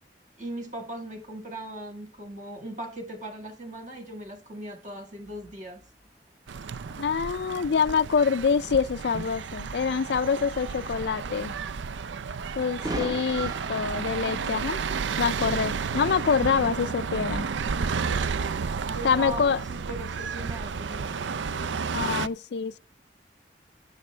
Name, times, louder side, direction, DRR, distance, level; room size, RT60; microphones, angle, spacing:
voice 1, 0.4-5.8 18.9-21.2, right 1 dB, 40° right, 1.9 m, -38 dB
sound 1, 3.5-18.8, right 1 dB, 20° right, 1.0 m, -46 dB
sound 2, 6.5-22.3, right 5 dB, 85° right, 0.5 m, -32 dB
voice 2, 7.0-11.6 12.6-14.8 15.2-17.5 19.0-19.6 21.9-22.8, left 6 dB, 65° left, 0.4 m, -26 dB
15.5 x 7.0 x 3.3 m
head